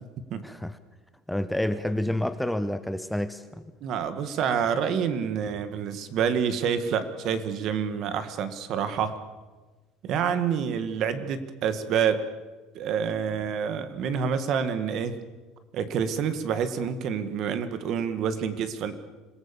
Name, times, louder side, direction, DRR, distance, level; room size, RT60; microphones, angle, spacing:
voice 1, 0.4-0.8 1.3-3.6, left 1 dB, ahead, 11 dB, 0.7 m, -29 dB
voice 2, 3.8-9.2 10.0-12.2 12.8-15.1 15.7-18.9, right 7 dB, 45° right, 11 dB, 1.8 m, -27 dB
26.5 x 18.0 x 7.1 m, 1.2 s
cardioid pair, 150°, 0 cm